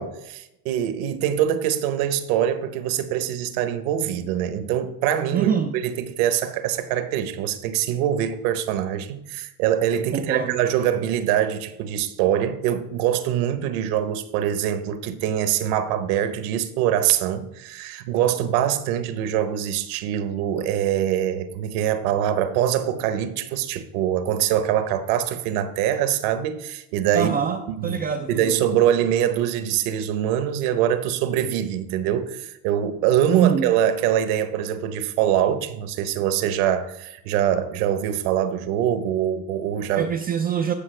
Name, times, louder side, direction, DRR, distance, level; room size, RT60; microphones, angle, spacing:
voice 1, 0.0-5.5 5.8-27.3 27.7-28.0 28.3-40.1, right 10 dB, 70° right, 1.0 m, -24 dB
voice 2, 5.3-5.7 10.1-10.6 27.1-28.6 33.3-33.6 40.0-40.7, right 8 dB, 25° right, 0.3 m, -24 dB
14.5 x 5.6 x 3.3 m
supercardioid pair, 125°, 46 cm